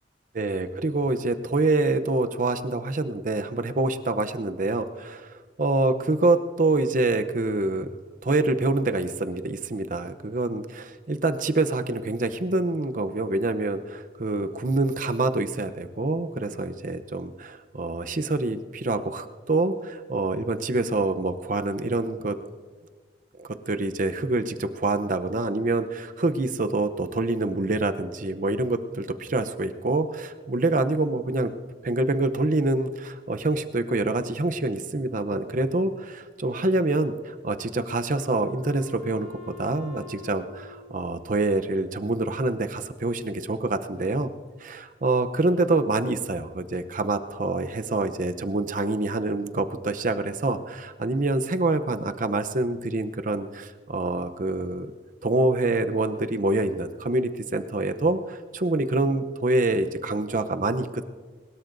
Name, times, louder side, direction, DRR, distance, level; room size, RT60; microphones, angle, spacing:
voice 1, 0.3-7.9 8.2-22.3 23.4-31.5 31.8-44.3 44.6-54.9 55.2-61.0, right 2 dB, 50° right, 9 dB, 0.7 m, -26 dB
Wind instrument woodwind instrument, 37.4-41.9, left 5 dB, 70° right, 2.4 m, -47 dB
22.0 x 20.5 x 2.6 m, 1.5 s
head